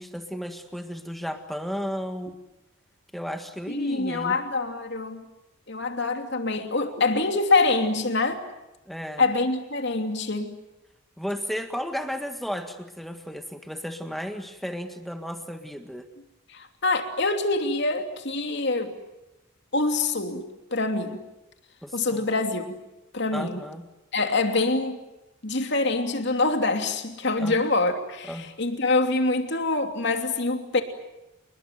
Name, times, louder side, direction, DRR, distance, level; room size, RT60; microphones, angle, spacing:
voice 1, 0.0-2.4 3.1-4.4 8.9-9.2 11.2-16.1 21.8-22.3 23.3-23.9 27.4-27.5 28.3-28.5, equal, ahead, 6 dB, 1.7 m, -34 dB
voice 2, 3.7-5.2 5.7-8.4 9.2-10.5 16.5-18.9 19.7-20.4 20.7-21.2 21.9-22.8 23.1-23.6 24.1-25.0 25.4-30.8, left 3 dB, 50° left, 5 dB, 2.9 m, -25 dB
29.0 x 21.0 x 9.4 m, 0.96 s
head